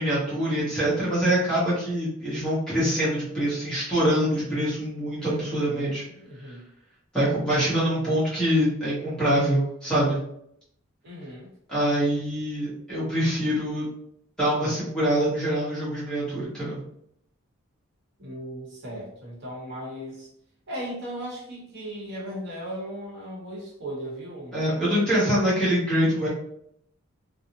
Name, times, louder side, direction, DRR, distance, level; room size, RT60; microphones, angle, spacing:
voice 1, 0.0-6.0 7.1-10.2 11.7-13.9 14.4-16.8 24.5-26.3, equal, 5° left, -10 dB, 1.0 m, -24 dB
voice 2, 5.2-6.6 11.0-11.5 18.2-20.3 20.7-24.5, equal, 50° right, -5 dB, 0.9 m, -37 dB
2.5 x 2.0 x 2.8 m, 0.72 s
head